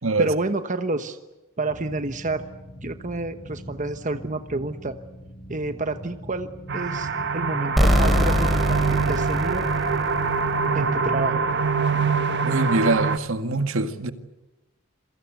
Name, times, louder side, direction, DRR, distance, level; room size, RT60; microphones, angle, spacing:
voice 1, 0.2-1.2 1.6-2.4 2.8-5.0 5.5-9.7 10.7-11.4, right 2 dB, 35° right, 9 dB, 1.2 m, -29 dB
sound 1, 1.7-12.4, equal, 90° left, 5.0 m, -43 dB
sound 2, 6.7-13.2, right 4 dB, 55° right, 1.4 m, -24 dB
sound 3, 7.8-10.5, equal, ahead, 4.3 m, -22 dB
voice 2, 12.4-14.1, right 3 dB, 70° right, 9 dB, 1.9 m, -23 dB
28.0 x 23.5 x 8.0 m, 1.0 s
head